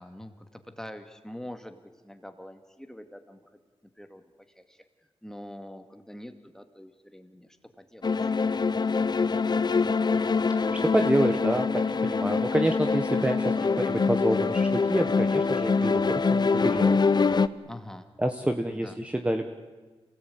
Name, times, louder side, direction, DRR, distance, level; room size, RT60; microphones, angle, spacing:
voice 1, 0.0-3.6 4.0-4.2 4.6-4.8 5.2-8.4 9.3-9.9 17.6-18.1 18.7-19.0, left 1 dB, 5° left, 7 dB, 2.1 m, -45 dB
sound 1, 8.0-17.5, left 4 dB, 45° left, 0.8 m, -24 dB
voice 2, 10.7-17.0 18.2-19.5, right 1 dB, 10° right, 5 dB, 1.4 m, -28 dB
27.5 x 18.0 x 9.3 m, 1.3 s
wide cardioid pair, 95°, 10 cm